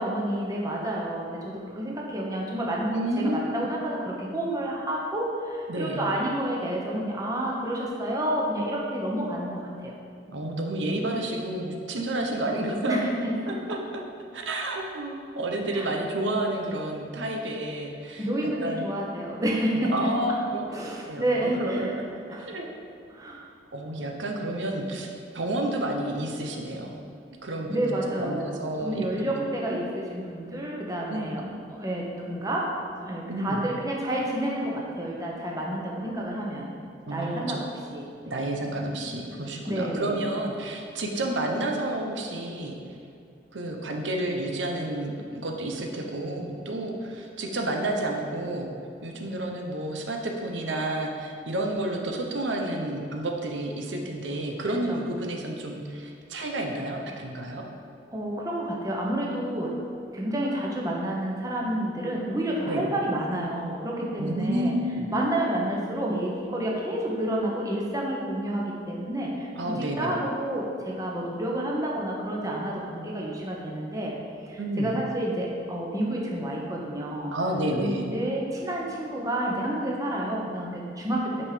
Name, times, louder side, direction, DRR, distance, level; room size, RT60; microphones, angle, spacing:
voice 1, 0.0-10.0 12.9-13.6 15.7-16.0 18.2-20.1 20.7-21.9 22.3-22.5 23.1-23.5 27.7-28.5 28.8-36.7 37.1-38.4 39.7-40.3 54.9-55.1 58.1-59.8 60.1-64.7 65.1-74.2 74.4-77.3 77.8-81.5, right 1 dB, 20° right, -3 dB, 1.1 m, -29 dB
voice 2, 2.9-3.7 5.7-6.0 10.3-13.1 13.5-13.6 14.3-18.8 19.7-22.0 22.3-22.7 23.7-27.0 27.4-27.8 28.2-29.3 29.7-29.8 31.1-31.3 33.3-33.6 37.1-37.6 38.3-42.8 43.5-48.7 49.0-57.6 62.6-62.8 64.2-65.1 69.6-70.2 74.6-74.9 77.3-78.1, right 1 dB, 80° right, 1 dB, 1.0 m, -30 dB
9.6 x 5.5 x 5.0 m, 2.4 s
head